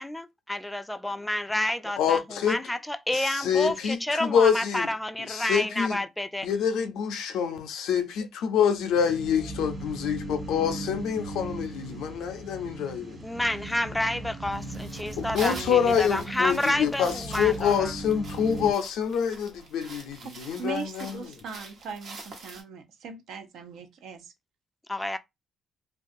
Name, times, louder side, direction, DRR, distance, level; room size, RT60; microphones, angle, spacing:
voice 1, 0.0-6.5 13.2-17.9 24.9-25.2, left 1 dB, 10° left, 0.3 m, -29 dB
voice 2, 2.0-2.6 3.1-4.9 5.3-6.0 6.4-13.2 15.2-21.2, left 7 dB, 85° left, 0.4 m, -26 dB
sound 1, 8.9-18.7, right 1 dB, 35° right, 1.3 m, -38 dB
sound 2, 14.5-22.6, right 3 dB, 65° right, 0.9 m, -46 dB
voice 3, 20.2-24.3, right 5 dB, 80° right, 0.5 m, -39 dB
2.4 x 2.3 x 2.5 m
cardioid pair, 90°, 0 cm